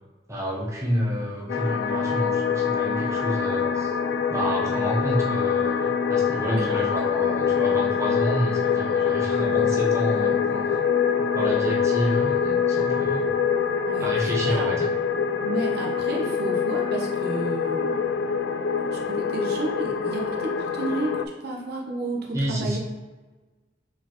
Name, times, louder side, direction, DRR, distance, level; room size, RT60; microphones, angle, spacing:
voice 1, 0.3-4.0 4.3-10.8 11.3-13.3 14.0-14.9 22.3-22.8, equal, 15° right, -4 dB, 0.9 m, -29 dB
sound 1, 1.5-21.3, left 6 dB, 65° left, 0.3 m, -24 dB
voice 2, 13.9-14.7 15.4-18.0 18.9-22.8, right 2 dB, 60° right, -1 dB, 0.7 m, -32 dB
4.2 x 4.1 x 3.0 m, 1.3 s
head